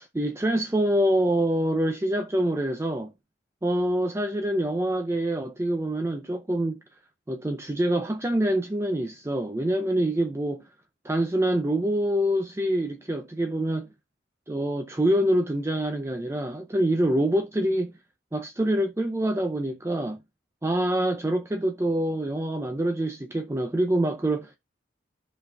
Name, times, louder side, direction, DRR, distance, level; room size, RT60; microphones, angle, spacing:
voice 1, 0.0-3.1 3.6-6.8 7.3-10.6 11.0-13.9 14.5-17.9 18.3-20.2 20.6-24.6, right 1 dB, 15° right, 0.5 m, -25 dB
14.5 x 5.2 x 2.3 m
head